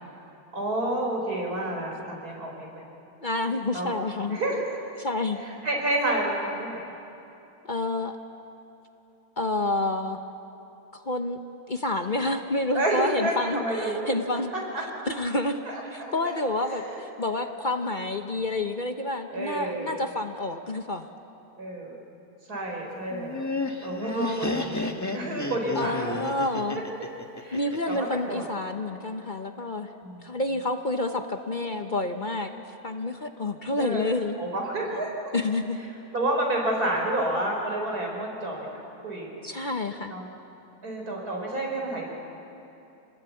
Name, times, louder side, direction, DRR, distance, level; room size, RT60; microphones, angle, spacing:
voice 1, 0.5-2.7 3.7-3.9 4.3-4.7 5.4-6.9 12.7-14.1 15.7-16.4 16.7-17.0 19.3-20.0 21.6-21.9 22.5-23.5 23.8-26.1 26.7-26.8 27.4-27.6 27.9-28.5 30.0-30.3 33.8-34.1 34.4-35.1 36.1-39.4 40.1-40.3 40.8-42.0, right 1 dB, 85° right, -1 dB, 5.1 m, -29 dB
voice 2, 3.2-4.4 5.0-5.4 7.7-8.2 9.4-10.2 10.9-11.4 11.7-14.5 15.0-15.6 15.9-21.1 24.1-24.8 25.7-26.8 27.5-29.9 30.2-32.6 32.8-34.4 35.3-35.8 39.4-40.1, left 2 dB, 40° left, 6 dB, 0.9 m, -29 dB
Laughter, 23.1-28.2, left 2 dB, 15° left, 1.1 m, -31 dB
26.5 x 20.5 x 8.4 m, 2.9 s
omnidirectional pair, 1.6 m